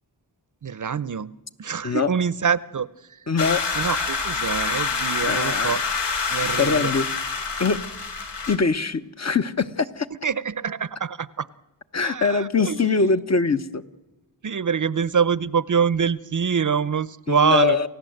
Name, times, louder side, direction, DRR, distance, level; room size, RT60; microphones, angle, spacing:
voice 1, 0.6-1.3 1.6-2.9 3.8-5.8 6.3-6.9 10.2-11.5 12.0-12.8 14.4-17.8, right 6 dB, 45° right, 18 dB, 0.7 m, -24 dB
voice 2, 3.3-3.6 5.2-5.8 6.6-7.1 7.6-7.8 8.5-10.1 11.9-13.8 17.3-17.9, left 4 dB, 40° left, 11 dB, 1.0 m, -22 dB
sound 1, 3.4-8.6, left 4 dB, 80° left, 3.2 m, -26 dB
28.5 x 16.0 x 7.8 m, 1.0 s
wide cardioid pair, 105°, 42 cm